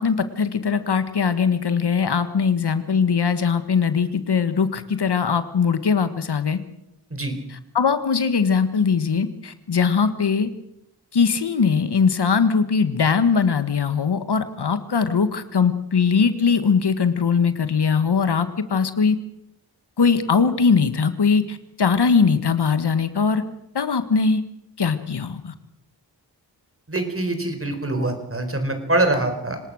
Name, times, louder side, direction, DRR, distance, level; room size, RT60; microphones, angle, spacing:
voice 1, 0.0-6.6 7.8-10.5 11.1-19.2 20.0-23.4 23.7-24.4 24.8-25.5, left 5 dB, 70° left, 11 dB, 1.7 m, -20 dB
voice 2, 26.9-29.6, right 2 dB, 35° right, 7 dB, 4.3 m, -24 dB
25.5 x 19.0 x 6.4 m, 0.79 s
wide cardioid pair, 95°, 41 cm